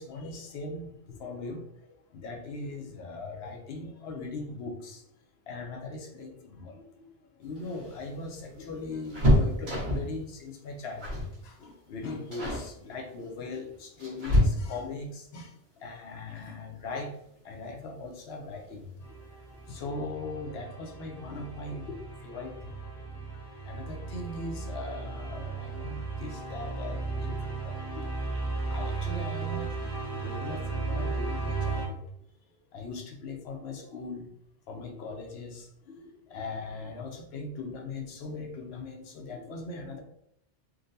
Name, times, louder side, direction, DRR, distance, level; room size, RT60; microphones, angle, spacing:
voice 1, 0.0-5.0 5.5-7.1 7.4-17.1 17.4-18.9 19.7-22.8 23.2-23.3 23.6-32.0 32.7-34.3 34.7-40.0, left 3 dB, 65° left, 3 dB, 0.8 m, -40 dB
sound 1, 7.5-10.2 11.0-11.4 11.6-11.9 12.3-12.7 13.5-15.0 16.7-16.8 17.2-17.3 18.5-18.9 19.2-19.3 19.6-19.8, left 1 dB, 65° right, 1.5 m, -27 dB
sound 2, 19.0-31.9, right 4 dB, 30° left, 0.8 m, -35 dB
3.8 x 2.2 x 2.6 m, 0.74 s
omnidirectional pair, 1.2 m